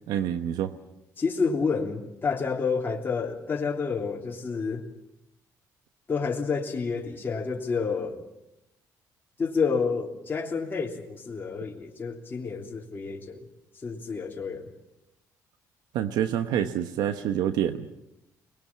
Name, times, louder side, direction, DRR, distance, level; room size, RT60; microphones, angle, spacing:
voice 1, 0.1-0.7 15.9-17.9, right 10 dB, 80° right, 9 dB, 1.0 m, -27 dB
voice 2, 1.2-4.9 6.1-8.2 9.4-13.4 13.8-14.7, left 5 dB, 30° left, -1 dB, 3.2 m, -29 dB
23.0 x 20.5 x 7.5 m, 0.88 s
cardioid pair, 95°, 7 cm